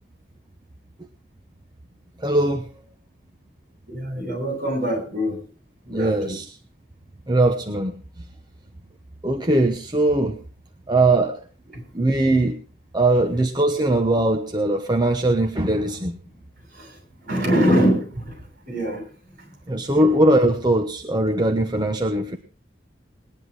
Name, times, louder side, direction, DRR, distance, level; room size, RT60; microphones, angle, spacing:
voice 1, 2.2-2.7 5.9-6.5 7.3-7.9 9.2-10.4 10.9-11.4 11.9-12.6 12.9-16.2 19.7-22.4, right 1 dB, 25° right, 5 dB, 1.0 m, -20 dB
voice 2, 3.9-5.4 5.9-6.3 11.7-11.8 16.7-16.9 17.2-18.3 18.7-19.0 20.0-20.1, equal, 50° right, 3 dB, 8.0 m, -23 dB
20.0 x 10.5 x 4.8 m, 0.39 s
head